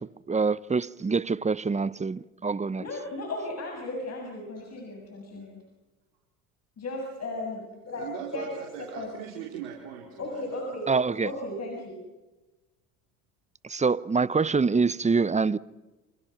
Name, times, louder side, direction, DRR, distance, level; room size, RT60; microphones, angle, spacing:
voice 1, 0.0-2.9 10.9-11.3 13.6-15.6, right 4 dB, 20° right, 0.9 m, -25 dB
voice 2, 2.8-5.4 6.8-8.5 9.0-9.1 10.2-10.9 11.2-12.0, left 2 dB, 40° left, 7.6 m, -35 dB
voice 3, 7.9-10.8, right 7 dB, 80° right, 4.4 m, -40 dB
28.5 x 27.5 x 6.0 m
hypercardioid pair, 65°, 38 cm